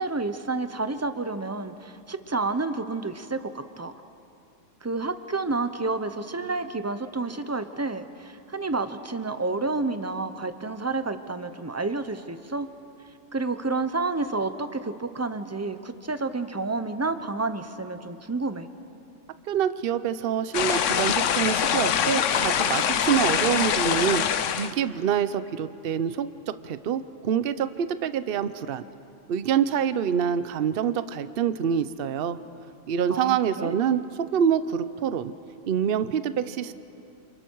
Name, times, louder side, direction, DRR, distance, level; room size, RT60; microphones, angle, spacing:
voice 1, 0.0-3.9 4.8-12.7 13.3-18.7 33.1-33.7, right 3 dB, 15° right, 10 dB, 0.6 m, -30 dB
voice 2, 19.5-24.2 24.6-28.8 29.3-32.4 32.9-35.3 35.7-36.8, right 8 dB, 55° right, 13 dB, 0.8 m, -26 dB
sound 1, 20.5-24.7, left 8 dB, 75° left, 1.1 m, -24 dB
28.5 x 28.0 x 4.6 m, 2.7 s
omnidirectional pair, 1.3 m